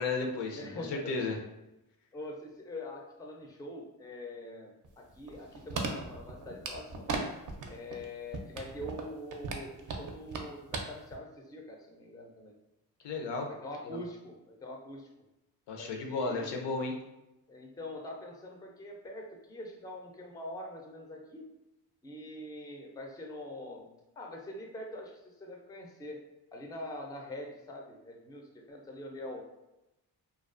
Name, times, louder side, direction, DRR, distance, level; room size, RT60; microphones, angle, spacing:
voice 1, 0.0-1.4 13.0-13.5 13.8-14.0 15.7-16.9, left 3 dB, 80° left, 3 dB, 0.6 m, -34 dB
voice 2, 0.5-1.1 2.1-7.1 7.7-12.5 13.6-15.1 15.8-16.7 17.5-21.5 22.0-23.9 24.2-26.2 26.5-29.4, left 1 dB, 10° left, 1 dB, 0.4 m, -44 dB
sound 1, 4.8-7.2 7.5-8.0 8.3-10.8 11.1-11.2, right 4 dB, 50° right, 0.5 m, -37 dB
2.3 x 2.3 x 2.4 m, 0.93 s
cardioid pair, 75°, 42 cm